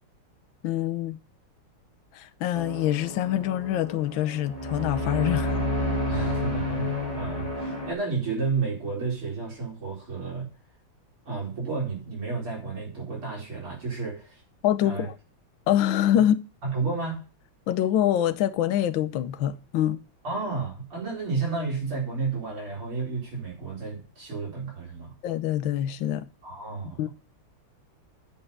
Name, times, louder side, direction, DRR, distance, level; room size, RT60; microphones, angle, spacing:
voice 1, 0.6-1.2 2.1-5.6 14.6-15.1 15.7-16.4 17.7-20.0 25.2-26.3 27.0-27.1, left 11 dB, 70° left, 1.5 m, -25 dB
sound 1, 2.5-7.9, left 1 dB, 15° left, 2.6 m, -30 dB
voice 2, 6.1-10.5 11.3-14.4 14.8-15.1 16.6-17.2 20.2-25.1 26.4-27.1, right 4 dB, 85° right, 5.6 m, -31 dB
8.7 x 5.6 x 8.0 m
omnidirectional pair, 2.3 m